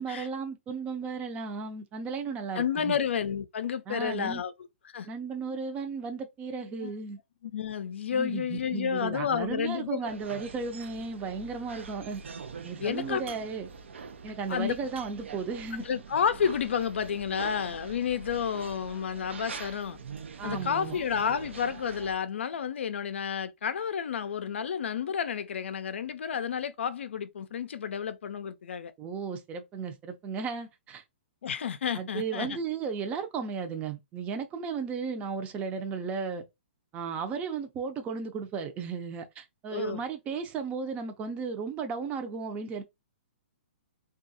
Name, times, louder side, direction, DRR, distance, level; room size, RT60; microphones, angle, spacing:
voice 1, 0.0-3.0 3.9-4.4 5.1-7.2 8.1-12.2 12.6-13.7 14.2-15.8 20.4-21.0 29.0-31.0 31.9-36.4 36.9-42.8, right 5 dB, 20° right, 0.5 m, -35 dB
voice 2, 2.5-4.5 4.9-5.1 6.8-6.9 7.4-10.0 12.8-13.3 14.5-14.8 15.8-20.0 20.4-28.9 31.4-32.6 39.7-40.0, left 7 dB, 75° left, 0.4 m, -31 dB
sound 1, 10.1-22.2, right 5 dB, 80° right, 0.5 m, -44 dB
2.5 x 2.4 x 2.6 m
hypercardioid pair, 140°, 6 cm